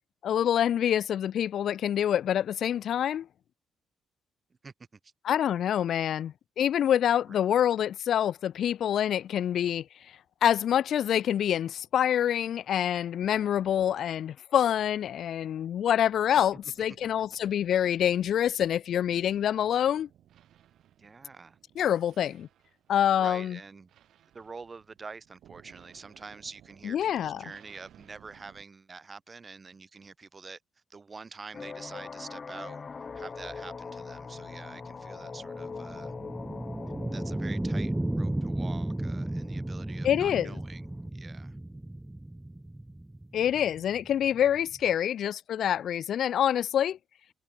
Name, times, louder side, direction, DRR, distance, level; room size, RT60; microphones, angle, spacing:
voice 1, 0.2-3.3 5.2-9.8 10.4-20.1 21.8-22.5 22.9-23.6 26.9-27.4 40.0-40.5 43.3-47.0, left 10 dB, 65° left, 0.3 m, -26 dB
voice 2, 4.6-5.1 7.3-7.4 21.0-21.6 22.2-22.3 23.1-23.9 24.3-30.6 30.9-32.8 33.1-36.1 37.1-41.6, right 4 dB, 30° right, 6.1 m, -46 dB
sound 1, 16.3-28.7, right 11 dB, 75° right, 5.0 m, -60 dB
sound 2, 31.5-41.1, left 5 dB, 35° left, 0.8 m, -43 dB
sound 3, 34.2-44.9, right 1 dB, 10° right, 1.3 m, -34 dB
cardioid pair, 90°, 0 cm